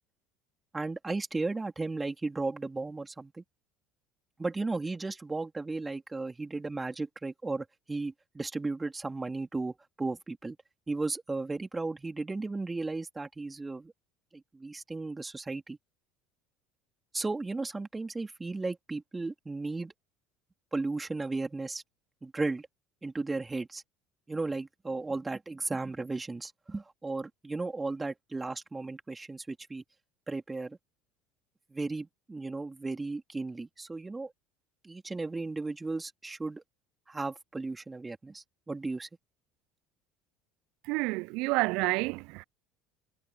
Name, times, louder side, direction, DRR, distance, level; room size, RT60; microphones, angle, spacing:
voice 1, 0.7-3.4 4.4-10.6 10.9-13.9 14.3-15.8 17.1-19.9 20.7-21.8 22.2-22.7 23.0-23.8 24.3-29.8 30.3-30.8 31.7-34.3 34.8-36.6 37.1-39.1, right 3 dB, 15° right, 3.6 m, -35 dB
voice 2, 40.8-42.4, right 25 dB, 65° right, 0.4 m, -29 dB
hypercardioid pair, 70°, 0 cm